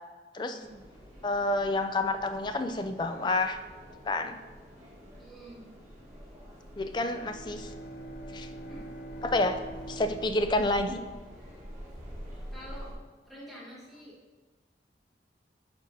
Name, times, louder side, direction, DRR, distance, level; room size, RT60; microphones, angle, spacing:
voice 1, 0.5-0.8 5.2-5.7 8.7-8.9 12.5-12.9 13.3-14.2, equal, ahead, -8 dB, 1.5 m, -47 dB
sound 1, 0.6-12.9, equal, 15° right, 2.0 m, -47 dB
voice 2, 1.2-3.6 4.0-4.4 6.8-7.7 8.3-8.5 9.2-9.6 9.9-11.0, left 2 dB, 25° left, 8 dB, 0.3 m, -29 dB
Bowed string instrument, 6.8-11.6, right 1 dB, 65° left, 0.6 m, -45 dB
9.0 x 5.1 x 2.7 m, 1.4 s
head